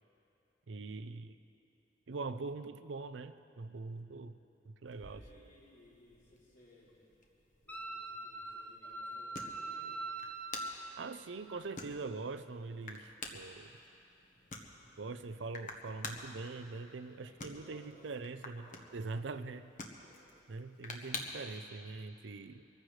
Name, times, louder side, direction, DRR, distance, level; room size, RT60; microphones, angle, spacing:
voice 1, 0.7-1.4 2.1-4.4 4.7-5.2 11.0-13.7 15.0-19.7 20.5-22.7, right 3 dB, 80° right, 11 dB, 0.5 m, -43 dB
voice 2, 4.9-7.0 7.6-10.1 17.1-18.1 18.6-19.0 20.0-20.2, equal, 80° left, -12 dB, 3.2 m, -62 dB
sound 1, 4.9-21.6, left 3 dB, 45° left, 1.2 m, -50 dB
Wind instrument woodwind instrument, 7.7-10.9, right 2 dB, 10° left, 0.8 m, -42 dB
24.0 x 15.0 x 3.3 m, 2.8 s
head